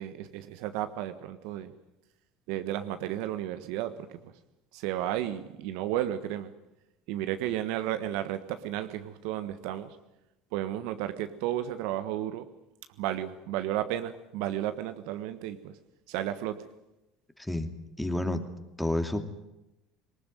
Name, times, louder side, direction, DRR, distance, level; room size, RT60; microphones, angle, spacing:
voice 1, 0.0-1.7 2.5-4.3 4.7-6.5 7.1-10.0 10.5-12.4 13.0-15.7 16.1-16.5, right 12 dB, 70° right, 10 dB, 1.4 m, -33 dB
voice 2, 18.0-18.4 18.8-19.2, left 1 dB, 5° left, 7 dB, 2.5 m, -29 dB
19.5 x 19.0 x 9.2 m, 0.93 s
hypercardioid pair, 80°, 0 cm